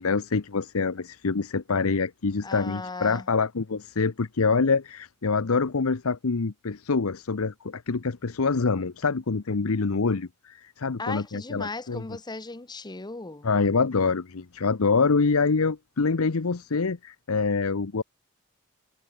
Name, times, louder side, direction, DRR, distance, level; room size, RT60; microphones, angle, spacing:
voice 1, 0.0-12.0 13.4-18.0, left 4 dB, 70° left, 0.8 m, -25 dB
voice 2, 2.4-3.3 11.0-13.5, left 3 dB, 20° left, 1.0 m, -36 dB
head